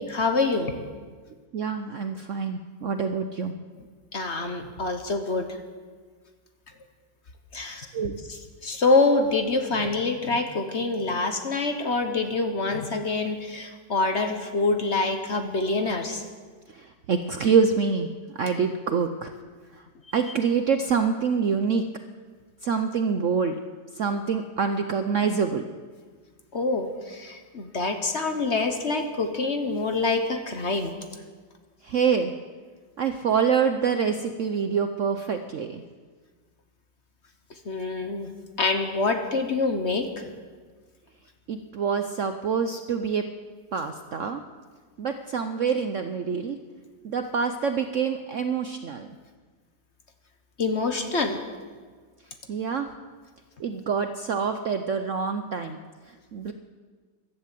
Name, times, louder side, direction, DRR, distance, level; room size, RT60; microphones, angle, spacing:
voice 1, 0.1-0.7 4.1-5.6 7.5-7.9 8.6-16.2 26.5-30.9 37.6-38.3 38.6-40.3 50.6-51.4, left 3 dB, 40° left, 6 dB, 1.3 m, -26 dB
voice 2, 1.5-3.5 7.8-8.1 16.7-19.3 20.1-21.8 22.6-23.6 23.9-25.6 31.8-32.3 33.0-35.8 41.5-43.2 43.7-44.4 45.0-46.6 47.0-49.1 52.5-52.9 53.6-55.8 56.1-56.5, right 6 dB, 60° right, 7 dB, 0.8 m, -26 dB
15.0 x 12.0 x 7.6 m, 1.5 s
omnidirectional pair, 2.0 m